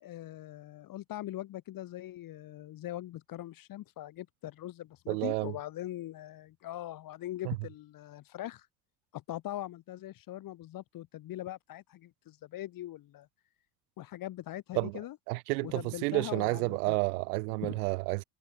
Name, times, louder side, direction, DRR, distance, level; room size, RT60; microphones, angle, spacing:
voice 1, 0.0-8.7 9.1-13.3 14.0-15.2 15.6-16.9 17.6-17.8, left 14 dB, 45° left, 1.5 m, -41 dB
voice 2, 5.1-5.5 7.4-7.6 14.8-15.0 15.3-18.2, right 26 dB, 75° right, 0.5 m, -30 dB
hypercardioid pair, 75°, 45 cm